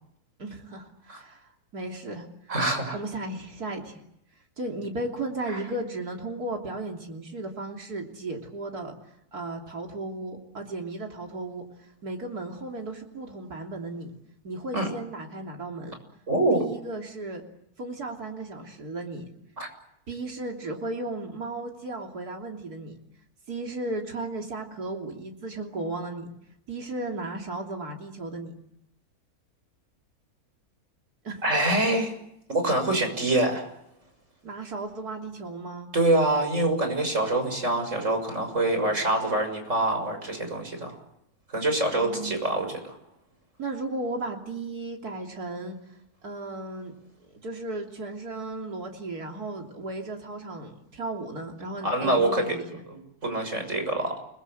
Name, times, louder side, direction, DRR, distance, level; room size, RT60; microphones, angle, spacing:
voice 1, 0.4-2.3 2.9-4.0 4.6-8.9 9.3-11.6 12.0-14.1 14.4-16.0 16.5-17.4 17.8-19.3 20.1-23.0 23.5-26.3 26.7-28.5 31.2-31.4 34.4-35.9 41.9-42.4 43.6-45.8 46.2-46.9 47.4-52.8, right 2 dB, 90° right, 1 dB, 3.7 m, -35 dB
voice 2, 2.5-3.0 14.7-14.9 16.3-16.6 19.6-19.7 31.4-32.2 32.5-33.7 35.9-41.0 41.5-43.0 51.8-52.4 52.9-54.1, right 1 dB, 55° right, 6 dB, 6.9 m, -25 dB
30.0 x 21.5 x 8.0 m, 0.78 s
omnidirectional pair, 1.6 m